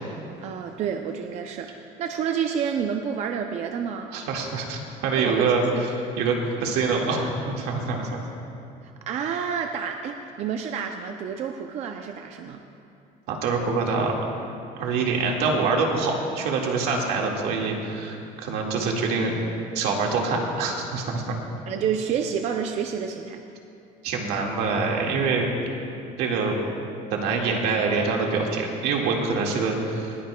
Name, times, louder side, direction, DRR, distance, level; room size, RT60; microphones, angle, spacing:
voice 1, 0.4-1.7 2.0-4.1 5.2-5.9 8.8-12.6 21.7-23.4, right 7 dB, 40° right, 4 dB, 0.5 m, -29 dB
voice 2, 4.1-5.6 6.2-8.2 13.3-14.1 14.8-19.4 19.7-21.4 24.0-25.5 26.2-26.6 27.1-30.2, right 4 dB, 75° right, 0 dB, 1.9 m, -25 dB
20.0 x 15.0 x 2.3 m, 2.7 s
cardioid pair, 160°, 17 cm